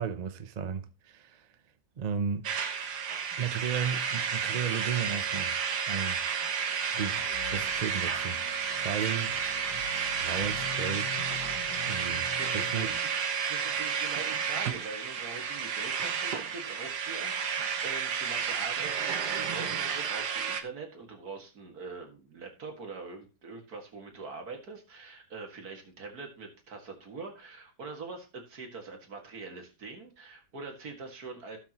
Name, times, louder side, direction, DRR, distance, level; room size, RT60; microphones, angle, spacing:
voice 1, 0.0-1.5 2.0-2.5 3.4-5.6 5.9-6.2 7.0-7.2 7.5-8.4 8.8-9.4 10.2-11.1 11.9-12.3 12.5-12.9, right 7 dB, 50° right, 0.5 m, -34 dB
sound 1, 2.4-20.6, right 7 dB, 80° right, 1.6 m, -31 dB
sound 2, 6.9-13.0, left 9 dB, 80° left, 1.6 m, -44 dB
voice 2, 12.4-13.1 13.5-31.6, right 4 dB, 65° right, 2.4 m, -43 dB
16.5 x 6.2 x 3.0 m
omnidirectional pair, 1.7 m